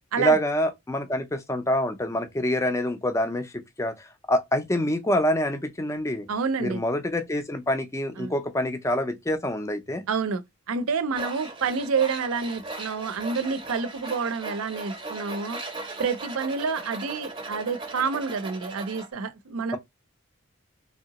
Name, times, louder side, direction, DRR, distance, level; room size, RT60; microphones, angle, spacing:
voice 1, 0.2-6.3 6.6-10.0, equal, 15° left, 0.4 m, -26 dB
voice 2, 6.3-6.8 8.2-8.3 10.1-10.4 10.7-15.6 16.0-19.8, right 5 dB, 80° right, 0.5 m, -28 dB
Tools, 11.1-19.1, right 2 dB, 25° right, 0.7 m, -38 dB
3.1 x 2.7 x 2.8 m
head